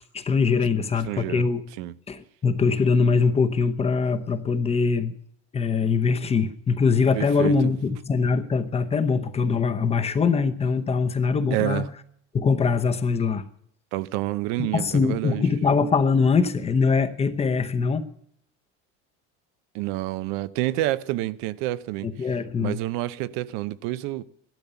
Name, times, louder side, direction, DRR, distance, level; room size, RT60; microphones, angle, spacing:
voice 1, 0.1-1.6 2.1-5.1 5.5-11.9 12.3-13.5 14.6-18.1 22.0-22.8, left 5 dB, 20° left, 0.8 m, -22 dB
voice 2, 1.1-1.4 1.8-1.9 7.2-7.5 11.5-11.9 13.9-15.4 19.7-22.3 22.6-24.2, right 16 dB, 70° right, 0.8 m, -28 dB
15.5 x 12.5 x 6.9 m
cardioid pair, 155°, 33 cm